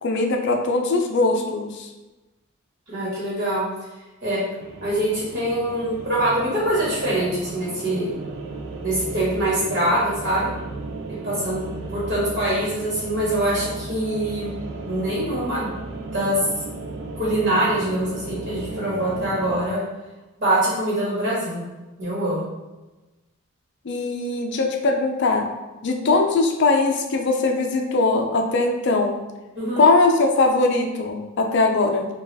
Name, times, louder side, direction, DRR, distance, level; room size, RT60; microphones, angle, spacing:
voice 1, 0.0-1.9 23.8-25.5 25.8-29.2 29.8-32.1, left 3 dB, 55° left, 3 dB, 0.5 m, -20 dB
voice 2, 2.9-3.6 4.2-4.4 4.8-8.1 8.8-10.5 11.2-11.6 11.9-14.5 14.8-15.7 16.1-16.4 17.1-19.8 20.4-21.6 22.0-22.4 29.5-29.8, right 1 dB, 40° right, -8 dB, 1.4 m, -24 dB
sound 1, 4.6-19.6, right 3 dB, 60° right, 0.5 m, -35 dB
4.6 x 2.4 x 3.4 m, 1.1 s
head